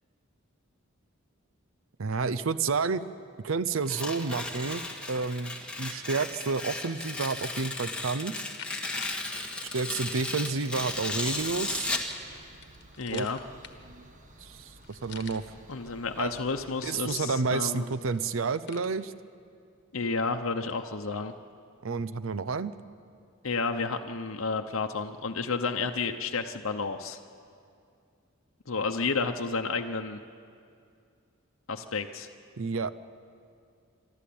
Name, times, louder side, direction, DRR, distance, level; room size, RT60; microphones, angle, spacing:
voice 1, 2.0-3.0 3.4-4.8 5.1-8.4 9.7-11.9 13.1-13.3 13.9-14.1 14.4-15.4 16.2-16.3 16.8-19.1 21.8-22.7 32.6-33.1, right 4 dB, 70° right, 15 dB, 0.6 m, -30 dB
Tearing, 3.8-12.1, left 2 dB, 5° left, 1.8 m, -35 dB
sound 1, 8.6-10.7 11.5-14.1 14.4-14.5 14.7-15.7 16.2-17.4 17.8-18.9, left 8 dB, 55° left, 1.3 m, -49 dB
sound 2, 11.2-17.2, right 1 dB, 40° right, 1.4 m, -54 dB
voice 2, 13.0-13.4 15.7-17.8 19.9-21.3 23.4-27.2 28.7-30.2 31.7-32.3, left 4 dB, 75° left, 5 dB, 0.9 m, -31 dB
27.0 x 12.0 x 8.6 m, 2.4 s
head